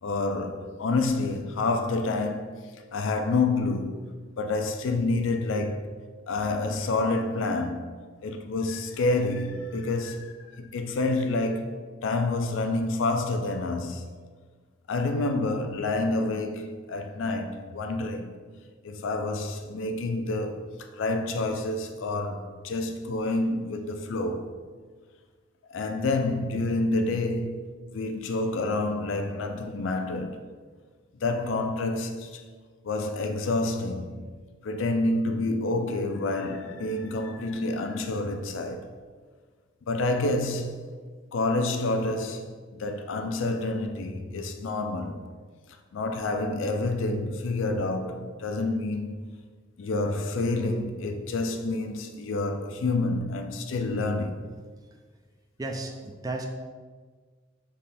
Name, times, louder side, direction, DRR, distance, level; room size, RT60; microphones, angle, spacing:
voice 1, 0.0-2.6 2.9-5.9 6.3-7.9 8.2-14.1 14.9-18.4 18.8-24.6 25.7-27.7 27.9-30.5 31.2-32.4 32.8-34.3 34.6-38.9 39.9-40.9 41.3-45.3 45.9-49.2 49.8-54.4, left 2 dB, 70° left, 0.4 m, -28 dB
voice 2, 55.6-56.5, right 2 dB, 20° right, 0.3 m, -33 dB
3.5 x 3.2 x 4.1 m
head